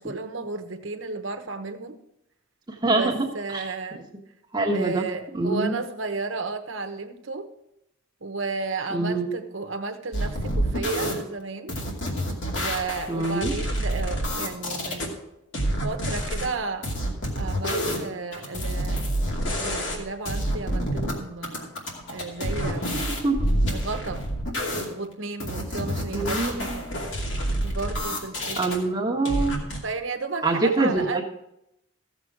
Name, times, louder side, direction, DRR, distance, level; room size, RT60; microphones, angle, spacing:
voice 1, 0.0-2.0 2.8-4.0 4.7-7.5 8.2-11.8 12.5-15.2 15.8-16.9 17.4-19.0 19.6-21.7 22.1-23.1 23.7-24.3 24.9-26.9 27.6-28.8 29.8-31.2, right 3 dB, 70° right, 7 dB, 1.1 m, -33 dB
voice 2, 2.8-3.2 3.5-3.7 3.9-4.0 4.5-5.1 5.3-5.8 8.9-9.3 13.1-13.5 23.2-23.5 26.1-26.8 28.6-29.6 30.4-31.2, right 2 dB, 20° right, 0 dB, 1.4 m, -24 dB
sound 1, 10.1-11.1 11.7-15.1 15.5-16.5 16.8-18.1 18.3-20.0 20.3-21.1 21.4-24.9 25.4-28.8 29.3-29.8, equal, 60° left, 2.6 m, -28 dB
15.0 x 7.4 x 4.8 m, 0.82 s
head